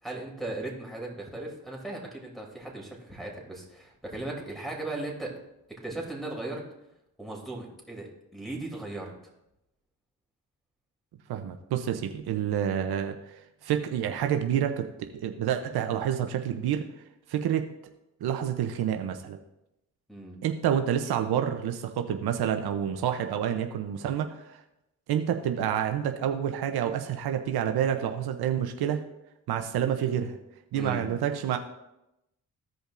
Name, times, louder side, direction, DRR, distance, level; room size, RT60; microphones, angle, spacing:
voice 1, 0.0-5.4 5.7-6.6 7.2-9.1 20.1-20.4 30.8-31.1, right 2 dB, ahead, -3 dB, 2.9 m, -37 dB
voice 2, 11.3-13.3 13.6-16.8 17.3-17.7 18.2-19.4 20.4-24.6 25.1-29.0 29.5-30.4 30.7-31.6, right 9 dB, 80° right, 6 dB, 0.7 m, -28 dB
15.5 x 5.2 x 2.5 m, 0.88 s
cardioid pair, 65°, 37 cm